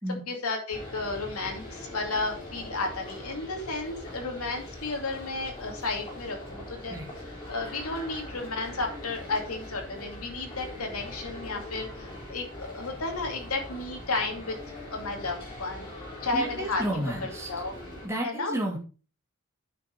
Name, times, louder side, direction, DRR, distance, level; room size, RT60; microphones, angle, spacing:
voice 1, 0.3-7.0 7.5-14.6 14.9-15.9 16.2-16.8 17.5-17.7 18.2-18.6, left 3 dB, 85° left, 3 dB, 2.4 m, -33 dB
sound 1, 0.7-18.1, left 1 dB, 25° left, 4.0 m, -42 dB
voice 2, 16.3-17.5 18.0-18.8, right 1 dB, 10° right, -2 dB, 2.4 m, -31 dB
9.1 x 5.7 x 4.5 m, 0.34 s
head